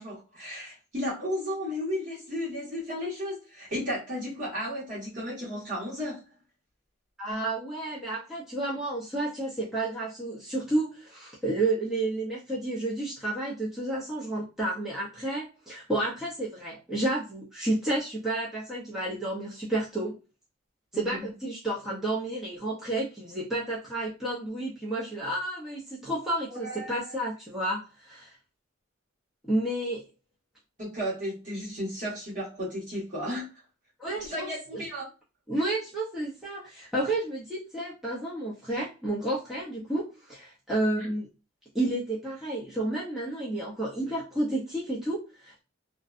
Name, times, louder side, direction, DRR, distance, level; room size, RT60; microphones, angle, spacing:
voice 1, 0.0-6.2 21.0-21.2 26.5-27.2 30.8-33.5 34.2-35.1 40.9-41.1, equal, 40° right, 1.4 m, -34 dB
voice 2, 7.2-20.2 20.9-28.4 29.4-30.0 34.0-34.5 35.5-41.3 41.7-45.6, right 1 dB, ahead, 0.6 m, -31 dB
2.6 x 2.2 x 2.4 m
head